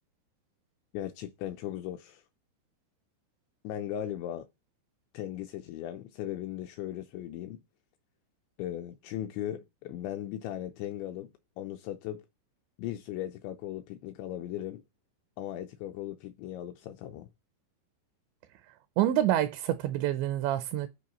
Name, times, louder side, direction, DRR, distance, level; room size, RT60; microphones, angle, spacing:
voice 1, 0.9-2.2 3.6-4.5 5.1-7.6 8.6-11.3 11.6-12.3 12.8-14.8 15.4-17.3, left 12 dB, 85° left, 2.6 m, -37 dB
voice 2, 19.0-20.9, right 12 dB, 85° right, 2.5 m, -27 dB
12.5 x 4.6 x 4.2 m
omnidirectional pair, 5.9 m